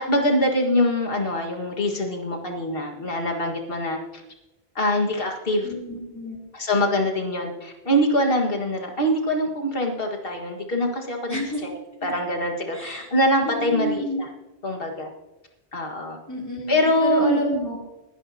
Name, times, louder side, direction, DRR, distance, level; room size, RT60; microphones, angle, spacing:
voice 1, 0.0-4.0 4.8-5.7 6.5-14.3 14.6-15.1 15.7-16.2 16.7-17.4, left 1 dB, 55° left, 1 dB, 1.9 m, -24 dB
voice 2, 5.6-6.4 11.3-11.7 12.0-12.1 12.7-13.1 13.4-14.2 16.3-17.8, equal, 15° left, -2 dB, 3.0 m, -29 dB
20.5 x 10.5 x 2.8 m, 1.0 s
omnidirectional pair, 1.1 m